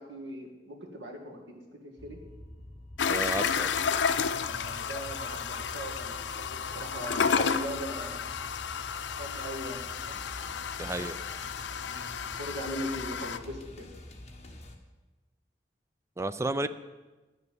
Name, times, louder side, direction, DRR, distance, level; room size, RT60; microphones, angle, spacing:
voice 1, 0.0-2.2 4.4-8.2 9.2-10.2 11.8-13.9, equal, 90° right, 1 dB, 2.1 m, -40 dB
sound 1, 2.0-14.8, left 1 dB, 40° left, 1.3 m, -47 dB
sound 2, 3.0-13.4, left 6 dB, 85° left, 0.5 m, -32 dB
voice 2, 3.1-3.7 10.8-11.2 16.2-16.7, right 2 dB, 15° right, 12 dB, 0.4 m, -32 dB
11.0 x 6.8 x 8.8 m, 1.2 s
head